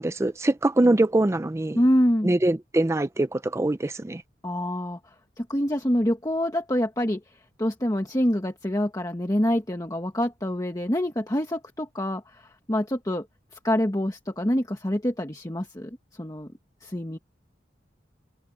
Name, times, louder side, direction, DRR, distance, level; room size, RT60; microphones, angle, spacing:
voice 1, 0.0-1.8 2.2-4.2, right 1 dB, 15° right, 0.4 m, -23 dB
voice 2, 1.7-2.3 4.4-5.0 5.4-7.2 7.6-13.2 13.6-15.9 16.2-16.5 16.8-17.2, equal, 20° left, 1.3 m, -26 dB
head